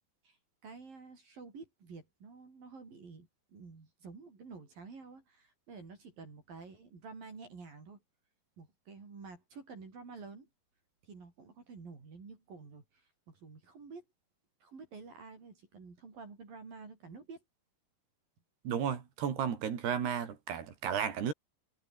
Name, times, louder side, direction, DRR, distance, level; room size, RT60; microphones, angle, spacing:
voice 1, 0.6-8.0 8.6-10.5 11.0-14.0 14.6-17.4, right 4 dB, 55° right, 7.5 m, -50 dB
voice 2, 18.6-21.3, right 8 dB, 70° right, 5.2 m, -33 dB
omnidirectional pair, 5.0 m